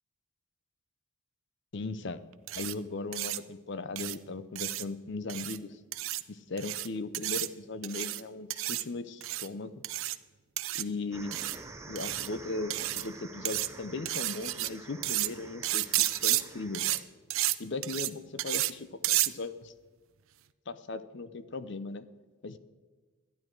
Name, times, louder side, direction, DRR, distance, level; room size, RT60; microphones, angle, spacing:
voice 1, 1.7-2.2 2.5-5.8 6.3-9.8 10.7-11.4 11.8-17.0 17.6-19.7 20.7-22.1 22.4-22.6, left 3 dB, 55° left, 13 dB, 0.6 m, -38 dB
sound 1, 2.5-2.7 3.1-3.4 4.0-4.2 4.6-4.8 5.3-5.6 5.9-6.2 6.6-6.9 7.1-7.5 7.8-8.2 8.5-8.8 9.2-9.5 9.8-10.2 10.6-10.8 11.3-11.6 12.0-12.3 12.7-13.1 13.5-13.7 14.1-14.7 15.0-15.3 15.6-16.4 16.7-17.0 17.3-17.6 17.8-18.1 18.4-18.7 19.0-19.3, right 16 dB, 70° right, 0.5 m, -31 dB
sound 2, 11.1-17.0, right 3 dB, 15° right, 0.6 m, -48 dB
12.0 x 10.5 x 4.6 m, 1.4 s
head